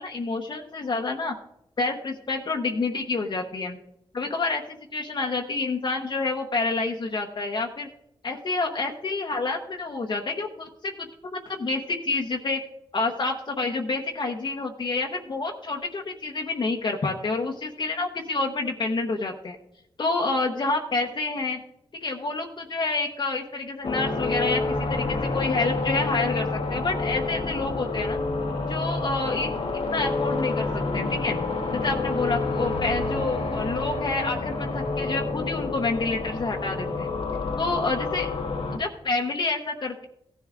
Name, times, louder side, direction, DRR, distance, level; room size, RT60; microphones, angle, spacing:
voice 1, 0.0-1.3 1.8-3.8 4.1-7.9 8.2-11.1 11.3-12.6 12.9-19.6 20.0-21.6 22.0-28.2 28.7-29.5 29.9-31.4 31.7-37.1 37.6-38.3 38.7-40.0, left 3 dB, 50° left, 1 dB, 0.9 m, -28 dB
sound 1, 23.8-38.8, left 3 dB, 90° left, 1.4 m, -28 dB
16.5 x 10.5 x 2.5 m, 0.79 s
wide cardioid pair, 120°, 10 cm